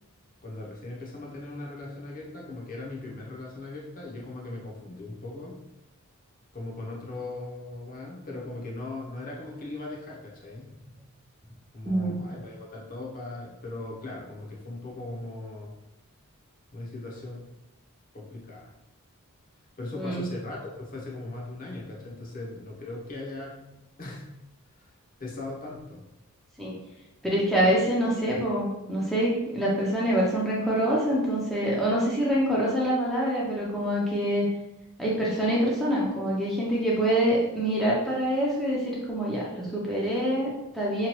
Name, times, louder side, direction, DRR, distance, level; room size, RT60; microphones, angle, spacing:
voice 1, 0.4-5.6 6.5-10.8 11.7-15.7 16.7-17.5 18.1-18.7 19.8-23.6 24.0-24.2 24.8-24.9 25.2-26.0, left 2 dB, 40° left, -3 dB, 0.7 m, -39 dB
voice 2, 11.9-12.2 20.0-20.2 26.6-26.7 27.2-34.5 35.0-41.1, right 1 dB, ahead, -7 dB, 0.5 m, -25 dB
2.9 x 2.2 x 2.9 m, 0.93 s
head